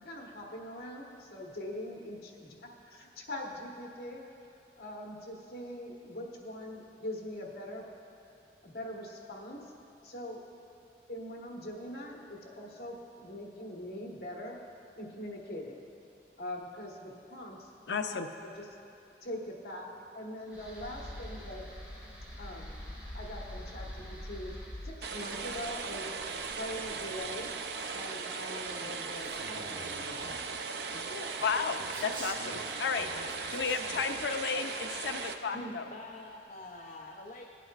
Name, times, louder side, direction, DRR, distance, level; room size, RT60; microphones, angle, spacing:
voice 1, 0.0-2.5 2.8-4.2 4.8-7.8 8.6-9.7 10.0-10.4 11.1-14.6 14.9-15.8 16.4-17.7 18.0-18.7 19.2-19.9 20.1-21.6 22.4-22.7 23.1-24.5 24.8-26.1 26.5-27.5 27.9-30.4 31.1-31.3 35.5-35.7, left 1 dB, 65° left, -1 dB, 1.3 m, -42 dB
voice 2, 17.9-18.3 31.4-33.1 33.5-35.9, left 5 dB, 90° left, 7 dB, 0.5 m, -33 dB
sound 1, 20.5-27.7, left 1 dB, 10° right, 1.6 m, -45 dB
sound 2, 25.0-35.3, right 4 dB, 75° right, 0.5 m, -38 dB
Male speech man speaking, 29.2-30.6 31.8-34.2, right 2 dB, 50° right, 1.3 m, -48 dB
voice 3, 35.9-37.5, left 2 dB, 45° left, 0 dB, 0.6 m, -46 dB
18.0 x 8.2 x 2.4 m, 2.9 s
head